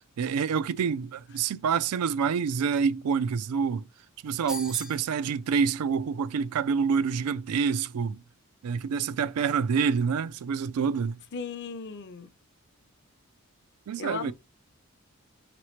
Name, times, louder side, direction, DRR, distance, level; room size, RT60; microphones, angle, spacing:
voice 1, 0.2-3.9 4.2-8.2 8.6-11.2 13.9-14.3, right 6 dB, 90° right, 0.4 m, -27 dB
sound 1, 4.5-5.1, equal, 5° right, 0.3 m, -37 dB
voice 2, 11.3-12.3 14.0-14.3, left 5 dB, 50° left, 0.5 m, -36 dB
4.7 x 3.0 x 3.0 m
head